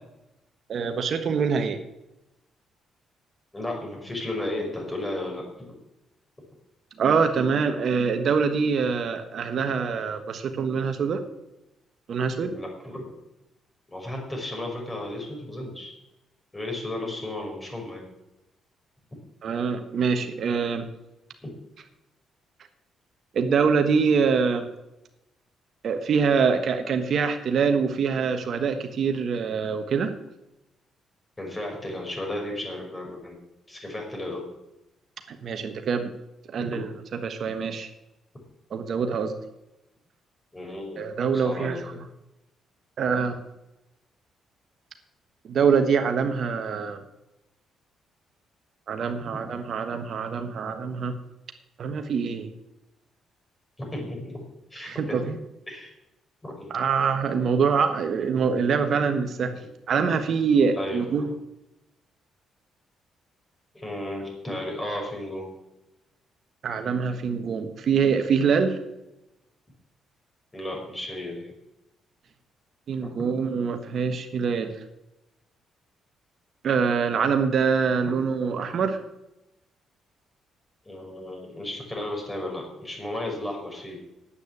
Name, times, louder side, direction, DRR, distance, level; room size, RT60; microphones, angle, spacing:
voice 1, 0.7-1.8 7.0-11.2 12.1-12.5 19.4-20.9 23.3-24.7 25.8-30.1 35.3-36.1 36.5-37.9 38.7-39.4 41.0-41.8 43.0-43.4 45.5-47.0 48.9-51.1 51.8-52.5 54.8-55.4 56.7-59.6 59.9-61.3 66.6-68.8 72.9-74.7 76.6-79.0, right 6 dB, 60° right, 7 dB, 1.2 m, -24 dB
voice 2, 3.5-5.7 12.4-13.1 13.9-15.9 16.5-18.0 21.4-21.5 31.4-33.4 33.7-34.4 36.6-36.8 40.5-41.0 41.3-42.0 53.8-54.4 54.7-55.3 55.7-55.9 56.4-56.7 60.7-61.3 63.7-65.5 70.5-71.5 73.0-73.3 78.0-78.1 80.9-84.0, left 1 dB, 20° left, 0 dB, 5.3 m, -34 dB
9.7 x 8.5 x 8.3 m, 0.92 s
cardioid pair, 90°, 0 cm